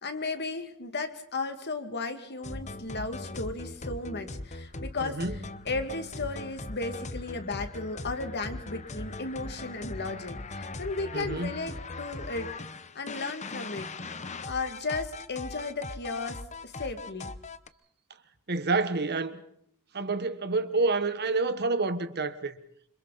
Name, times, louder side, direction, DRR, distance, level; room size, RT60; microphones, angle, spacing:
voice 1, 0.0-5.4 5.7-12.5 12.9-13.9 14.5-17.3, left 3 dB, 50° left, 2.3 m, -35 dB
sound 1, 2.4-17.7, left 2 dB, 30° left, 1.0 m, -40 dB
voice 2, 5.0-5.4 11.1-11.6 18.5-19.4 19.9-22.6, right 3 dB, 50° right, 1.4 m, -28 dB
28.0 x 26.0 x 4.2 m
head